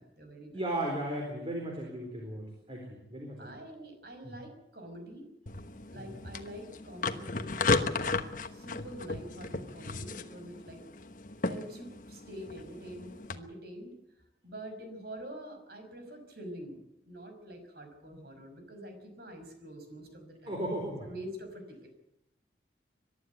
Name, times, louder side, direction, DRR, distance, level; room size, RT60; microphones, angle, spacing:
voice 1, 0.0-0.6 3.4-5.3 5.9-8.2 8.5-10.8 11.5-14.0 14.4-20.6 21.0-21.9, right 1 dB, 60° right, 6 dB, 5.6 m, -46 dB
voice 2, 0.5-3.6 4.2-4.4 5.9-6.1 20.5-21.1, right 1 dB, 30° right, 1 dB, 4.1 m, -36 dB
sound 1, 5.5-13.4, left 3 dB, 50° left, 1.2 m, -35 dB
22.5 x 12.0 x 9.5 m, 0.86 s
head